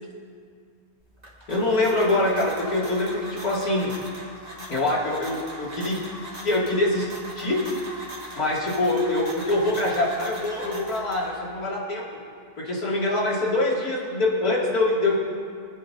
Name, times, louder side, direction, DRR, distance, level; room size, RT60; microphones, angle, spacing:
sound 1, 1.0-11.6, right 1 dB, 25° right, 2.3 m, -40 dB
voice 1, 1.5-3.9 4.7-6.0 6.4-7.1 7.4-7.6 8.4-12.0 12.6-15.1, left 2 dB, 75° left, -5 dB, 3.0 m, -24 dB
24.5 x 9.4 x 2.7 m, 2.1 s
omnidirectional pair, 1.6 m